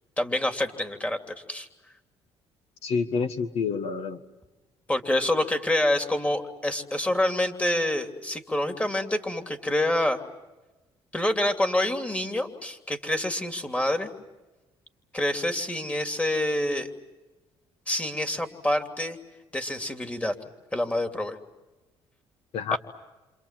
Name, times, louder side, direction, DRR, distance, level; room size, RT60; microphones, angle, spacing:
voice 1, 0.2-1.2 1.5-1.7 4.9-10.2 11.1-14.1 15.1-16.9 17.9-19.2 19.5-20.3 20.7-21.4 22.7-22.8, left 1 dB, 10° left, 5 dB, 3.0 m, -27 dB
voice 2, 2.8-4.2 22.5-22.8, left 5 dB, 70° left, 9 dB, 1.6 m, -28 dB
29.5 x 27.0 x 7.5 m, 1.1 s
cardioid pair, 105°, 11 cm